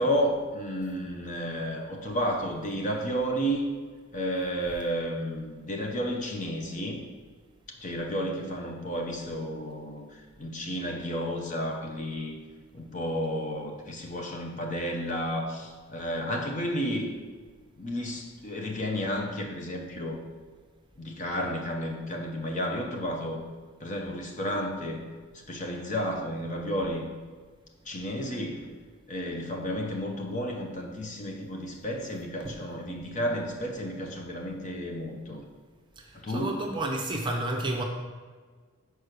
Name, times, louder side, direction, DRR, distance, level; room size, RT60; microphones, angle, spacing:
voice 1, 0.0-3.7 4.1-7.0 7.8-12.3 12.7-17.1 17.8-20.2 21.0-23.4 23.8-25.0 25.5-27.1 27.8-28.7 29.1-35.4 36.1-36.6, equal, 35° left, 1 dB, 0.9 m, -32 dB
voice 2, 36.0-37.8, right 1 dB, 20° right, 1 dB, 0.7 m, -31 dB
6.3 x 4.7 x 6.7 m, 1.5 s
head